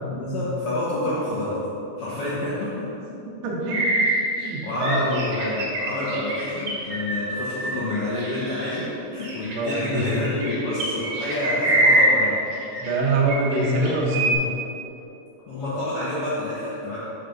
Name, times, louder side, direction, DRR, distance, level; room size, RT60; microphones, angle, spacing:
voice 1, 0.1-1.6 2.0-2.7 4.4-12.4 15.5-17.0, left 1 dB, 60° left, -10 dB, 1.7 m, -28 dB
voice 2, 3.4-3.8 4.2-5.1 9.5-10.3 12.8-14.4, right 2 dB, 85° right, -3 dB, 1.1 m, -24 dB
sound 1, 3.7-8.8 9.2-13.0 13.3-14.4, right 2 dB, 65° right, 2.4 m, -25 dB
5.2 x 4.9 x 5.8 m, 2.9 s
omnidirectional pair, 3.7 m